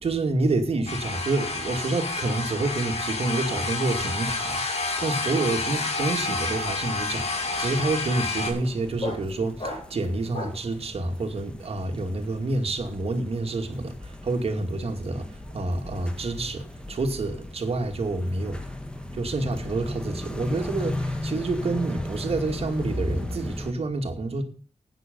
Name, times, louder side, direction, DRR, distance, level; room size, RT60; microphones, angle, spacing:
voice 1, 0.0-18.7 19.1-24.4, right 2 dB, 60° right, 2.5 m, -28 dB
sound 1, 0.9-8.5, left 3 dB, 70° left, 3.3 m, -29 dB
sound 2, 4.5-10.7, left 2 dB, 50° left, 7.1 m, -39 dB
sound 3, 6.5-23.7, left 1 dB, 10° left, 1.8 m, -37 dB
11.5 x 9.1 x 5.4 m
wide cardioid pair, 120°, 11 cm